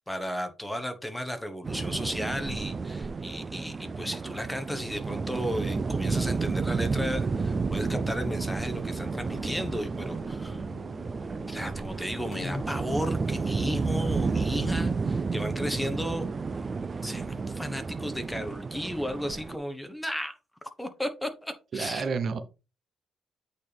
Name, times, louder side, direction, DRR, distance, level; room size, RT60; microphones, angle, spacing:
voice 1, 0.1-10.6 11.5-16.3 17.0-20.4 20.8-22.1, equal, 5° left, 1.2 m, -34 dB
sound 1, 1.6-19.6, right 4 dB, 35° right, 0.4 m, -31 dB
sound 2, 7.2-12.6, left 4 dB, 60° left, 1.4 m, -47 dB
voice 2, 21.7-22.4, right 5 dB, 55° right, 0.8 m, -30 dB
8.4 x 4.2 x 3.4 m
cardioid pair, 90°, 0 cm